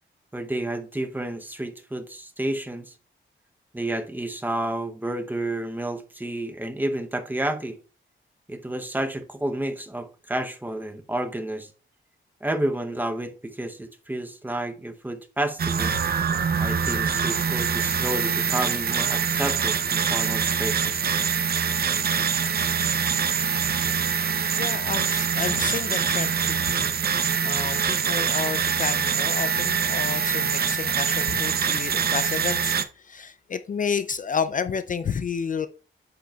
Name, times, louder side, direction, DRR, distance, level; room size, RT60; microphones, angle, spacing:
voice 1, 0.3-2.9 3.7-7.8 8.5-11.7 12.4-15.9 16.6-21.1, right 1 dB, 10° right, 0.7 m, -30 dB
sound 1, 15.6-32.8, right 6 dB, 50° right, 0.6 m, -24 dB
voice 2, 24.3-32.8 33.1-35.7, left 6 dB, 40° left, 0.4 m, -31 dB
8.9 x 7.6 x 2.3 m
wide cardioid pair, 160°, 21 cm